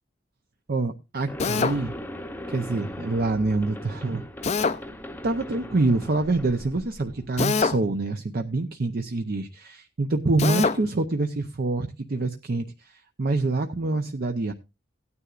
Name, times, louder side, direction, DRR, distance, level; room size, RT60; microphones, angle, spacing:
voice 1, 0.7-1.9 2.5-4.2 5.2-14.5, right 2 dB, 50° right, 6 dB, 0.6 m, -26 dB
sound 1, 1.3-7.3, left 1 dB, 10° left, 0.7 m, -39 dB
Drill, 1.4-1.8 4.4-4.8 7.4-7.8 10.4-10.8, left 4 dB, 35° left, 0.4 m, -23 dB
16.5 x 9.7 x 2.5 m, 0.26 s
head